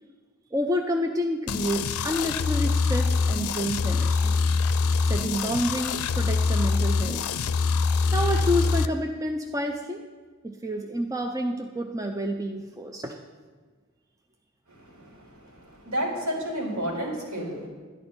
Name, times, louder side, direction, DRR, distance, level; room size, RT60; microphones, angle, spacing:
voice 1, 0.5-4.4 5.1-7.2 8.1-10.0 10.4-13.2, equal, 15° right, 3 dB, 0.4 m, -29 dB
sound 1, 1.5-8.9, left 4 dB, 90° left, 0.5 m, -24 dB
voice 2, 14.7-17.7, equal, 75° right, -4 dB, 4.2 m, -32 dB
11.5 x 11.0 x 4.4 m, 1.4 s
head